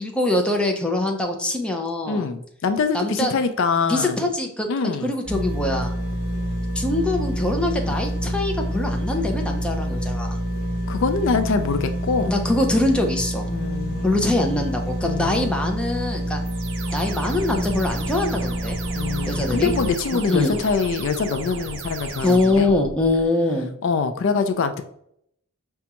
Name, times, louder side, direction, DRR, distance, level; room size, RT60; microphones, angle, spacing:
voice 1, 0.0-2.3 2.9-3.4 3.9-5.9 6.8-10.4 12.3-13.5 14.0-16.4 16.9-18.8 19.3-19.7 20.1-20.5 22.2-23.7, left 2 dB, 5° left, 2 dB, 0.5 m, -23 dB
voice 2, 2.1-4.2 4.7-5.1 7.9-8.0 10.9-12.3 13.5-14.4 15.1-15.5 19.0-22.7 23.8-24.8, left 5 dB, 65° left, 9 dB, 0.3 m, -24 dB
sound 1, 5.3-19.9, equal, 45° left, 1.1 m, -27 dB
sound 2, 16.4-23.3, right 4 dB, 60° right, 0.5 m, -35 dB
5.1 x 2.3 x 2.8 m, 0.71 s
head